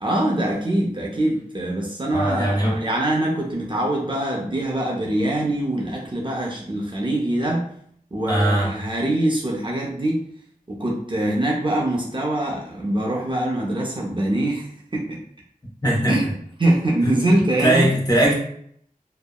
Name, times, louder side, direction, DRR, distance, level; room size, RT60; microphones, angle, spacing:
voice 1, 0.0-7.7 8.1-10.2 10.7-14.7 14.9-15.2 16.1-16.3 16.6-17.9, right 1 dB, 35° right, -3 dB, 0.5 m, -23 dB
voice 2, 2.1-2.8 8.3-8.7 15.8-16.2 17.0-18.4, right 1 dB, 25° left, -3 dB, 0.9 m, -20 dB
2.7 x 2.0 x 2.3 m, 0.64 s
wide cardioid pair, 45°, 15 cm